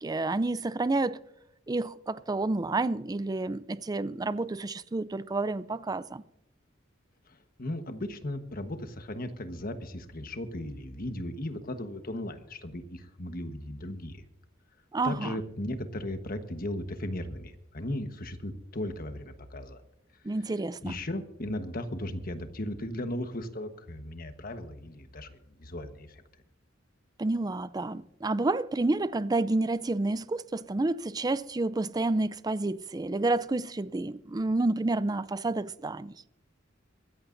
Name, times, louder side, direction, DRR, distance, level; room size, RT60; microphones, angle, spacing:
voice 1, 0.0-1.2 1.7-6.2 14.9-15.4 20.2-21.0 27.2-36.1, right 2 dB, 20° right, 0.4 m, -29 dB
voice 2, 7.3-14.2 15.0-19.8 20.8-26.2, left 1 dB, 50° left, 1.3 m, -36 dB
23.5 x 14.0 x 2.6 m
head